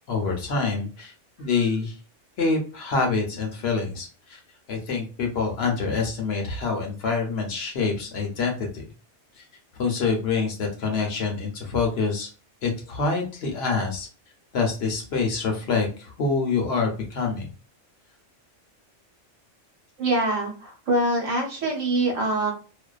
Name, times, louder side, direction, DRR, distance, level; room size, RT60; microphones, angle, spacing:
voice 1, 0.1-1.1 1.4-1.9 2.4-4.4 4.7-8.8 9.8-12.3 12.6-14.1 14.5-17.5, left 4 dB, 65° left, 2 dB, 0.8 m, -26 dB
voice 2, 20.0-22.5, right 2 dB, 80° right, 0 dB, 1.2 m, -24 dB
2.5 x 2.2 x 2.3 m, 0.36 s
omnidirectional pair, 1.3 m